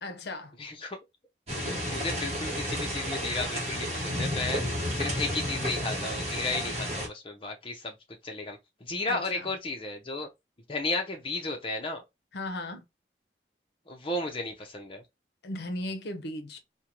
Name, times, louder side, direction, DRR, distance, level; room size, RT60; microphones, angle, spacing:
voice 1, 0.0-0.5 9.1-9.5 12.3-12.9 15.4-16.6, left 1 dB, 70° left, 0.6 m, -36 dB
voice 2, 0.6-1.0 1.6-4.6 4.9-8.0 8.2-10.3 10.7-12.0 13.9-15.0, left 2 dB, 30° left, 0.6 m, -34 dB
sound 1, 1.5-7.1, equal, 35° right, 0.9 m, -32 dB
2.6 x 2.2 x 2.9 m
head